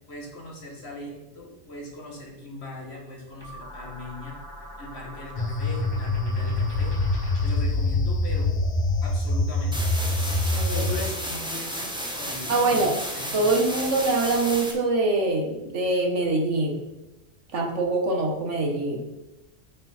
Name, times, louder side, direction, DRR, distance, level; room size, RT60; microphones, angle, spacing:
voice 1, 0.1-4.4 4.8-7.0 7.4-8.5 9.0-9.8 10.7-13.6, left 1 dB, 60° left, -2 dB, 2.2 m, -39 dB
sound 1, 3.4-7.8, equal, 20° right, 2.0 m, -42 dB
sound 2, 5.4-11.1, left 2 dB, 35° left, 0.5 m, -25 dB
sound 3, 9.7-14.7, equal, 5° right, 1.2 m, -33 dB
voice 2, 10.5-10.9 12.5-13.0 13.3-16.8 17.5-19.1, right 2 dB, 75° right, 2 dB, 1.6 m, -24 dB
8.6 x 6.1 x 4.3 m, 1.0 s
omnidirectional pair, 1.3 m